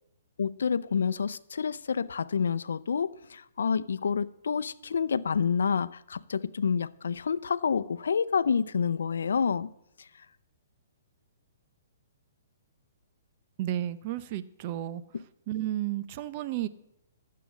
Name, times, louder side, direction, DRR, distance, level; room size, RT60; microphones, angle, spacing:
voice 1, 0.4-9.7, left 6 dB, 85° left, 0.6 m, -28 dB
voice 2, 13.6-15.0 15.5-16.7, right 13 dB, 40° right, 0.7 m, -32 dB
12.0 x 7.7 x 7.5 m
hypercardioid pair, 150°, 0 cm